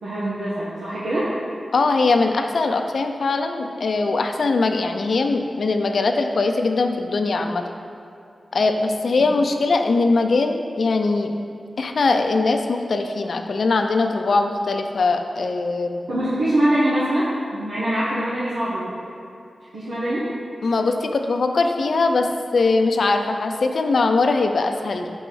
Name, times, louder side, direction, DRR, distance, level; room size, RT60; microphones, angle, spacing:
voice 1, 0.0-1.3 16.1-19.0 19.7-20.3, right 1 dB, 85° right, -10 dB, 1.1 m, -23 dB
voice 2, 1.7-7.6 8.5-11.3 11.8-16.0 20.6-22.3 22.5-25.1, left 3 dB, 70° left, 5 dB, 0.4 m, -21 dB
5.4 x 4.1 x 5.5 m, 2.7 s
cardioid pair, 45°, 0 cm